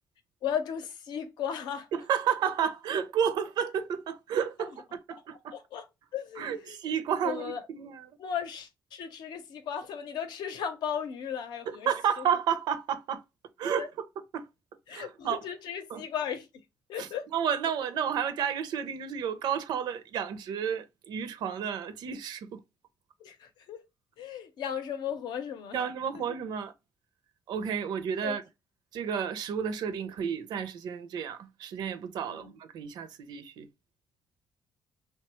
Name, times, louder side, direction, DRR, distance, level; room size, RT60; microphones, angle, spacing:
voice 1, 0.4-1.9 4.6-4.7 5.5-5.8 6.1-6.8 7.2-7.6 8.2-11.9 13.8-13.9 14.9-16.5 16.9-17.3 23.2-23.8 24.2-25.8 28.2-28.4 32.3-32.5, left 8 dB, 75° left, 0.7 m, -35 dB
voice 2, 1.9-5.5 6.4-8.1 11.7-13.2 13.6-14.1 14.3-14.5 14.9-15.4 15.9-16.0 17.0-22.6 25.7-26.7 27.5-28.4 28.9-33.7, right 8 dB, 70° right, 0.5 m, -31 dB
3.1 x 2.2 x 2.9 m
cardioid pair, 175°, 8 cm